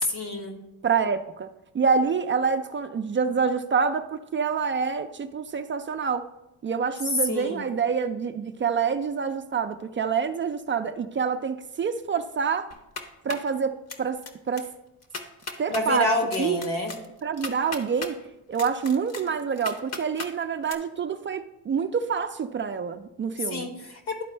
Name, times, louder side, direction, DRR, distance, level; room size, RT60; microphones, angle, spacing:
voice 1, 0.1-0.6 7.2-7.7 15.7-16.9 23.4-24.2, left 2 dB, 65° left, 3 dB, 1.6 m, -28 dB
voice 2, 0.8-1.5 1.7-6.2 6.6-12.7 13.2-14.2 14.5-14.6 15.6-16.1 16.4-16.6 17.2-18.2 18.5-23.7, right 6 dB, 30° right, 9 dB, 0.3 m, -27 dB
sound 1, 12.7-13.5 13.9-14.3 14.6-14.7 15.0-15.8 16.3-18.1 18.6-20.3 20.7-20.8, left 4 dB, 40° left, 0.9 m, -36 dB
11.5 x 4.3 x 3.2 m, 0.93 s
cardioid pair, 100°, 41 cm